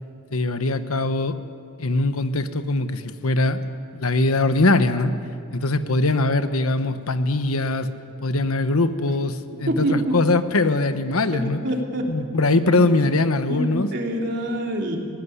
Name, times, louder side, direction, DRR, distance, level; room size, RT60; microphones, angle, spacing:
voice 1, 0.3-1.4 1.8-3.6 3.9-5.1 5.5-7.9 8.2-9.3 9.6-11.6 12.1-13.9, left 2 dB, 90° left, 10 dB, 1.2 m, -21 dB
voice 2, 9.7-10.2 11.3-12.1 12.7-12.9 13.5-15.0, right 1 dB, 50° right, 0 dB, 3.3 m, -26 dB
19.5 x 18.5 x 9.9 m, 2.5 s
head